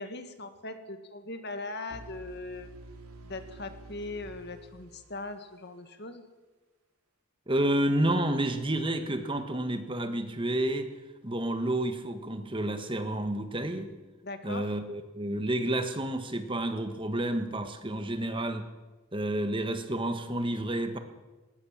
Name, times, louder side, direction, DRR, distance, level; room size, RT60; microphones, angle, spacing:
voice 1, 0.0-2.7 3.2-6.2 14.2-14.7, left 2 dB, 50° left, 8 dB, 1.9 m, -40 dB
sound 1, 1.9-5.8, right 2 dB, 85° right, 2.9 m, -49 dB
voice 2, 7.5-10.9 11.2-13.9 14.4-18.6 19.1-21.0, right 1 dB, 25° right, 8 dB, 1.5 m, -30 dB
20.0 x 19.0 x 7.4 m, 1.2 s
head